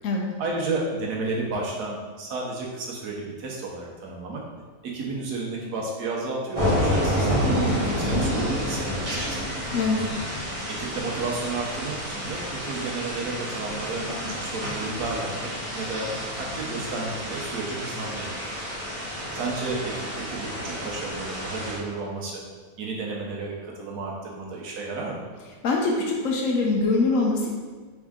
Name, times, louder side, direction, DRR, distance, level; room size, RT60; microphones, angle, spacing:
voice 1, 0.4-4.4 4.8-9.5 10.7-16.1 16.4-18.5 19.3-22.4 22.8-25.2, right 3 dB, 85° right, -2 dB, 1.4 m, -32 dB
sound 1, 6.5-21.8, equal, 25° right, 1.2 m, -29 dB
voice 2, 9.7-10.1 25.6-27.6, left 3 dB, 65° left, 0 dB, 0.9 m, -23 dB
3.7 x 3.6 x 3.6 m, 1.4 s
omnidirectional pair, 1.7 m